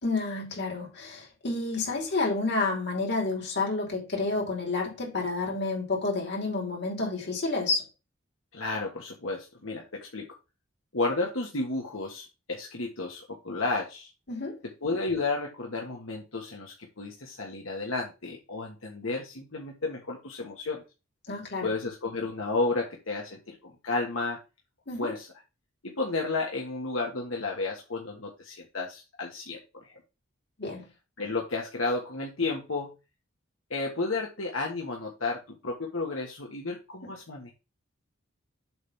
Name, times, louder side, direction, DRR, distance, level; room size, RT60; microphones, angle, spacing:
voice 1, 0.0-7.8 14.3-14.6 21.3-21.7 24.9-25.1 30.6-30.8 37.0-37.1, left 3 dB, 55° left, 2.9 m, -30 dB
voice 2, 8.5-10.2 10.9-14.1 14.8-20.8 21.6-24.4 25.0-25.3 25.8-29.6 29.8-29.9 31.2-32.9 33.7-37.5, left 3 dB, 80° left, 1.5 m, -32 dB
7.8 x 3.4 x 5.6 m
head